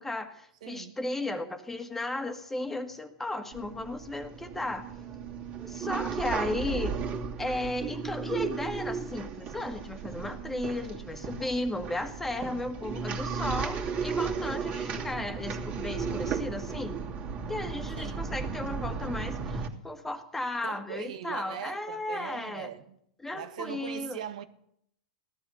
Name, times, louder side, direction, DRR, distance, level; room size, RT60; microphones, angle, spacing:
voice 1, 0.0-4.9 5.7-7.0 7.4-17.0 17.5-22.7 23.2-24.2, left 2 dB, 5° left, 1.8 m, -35 dB
voice 2, 0.6-1.0 6.3-6.4 17.9-18.3 20.6-23.0 23.3-24.4, right 10 dB, 75° right, 1.5 m, -40 dB
sound 1, 3.5-19.7, right 5 dB, 35° right, 2.8 m, -35 dB
17.0 x 12.5 x 6.9 m
hypercardioid pair, 125°, 4 cm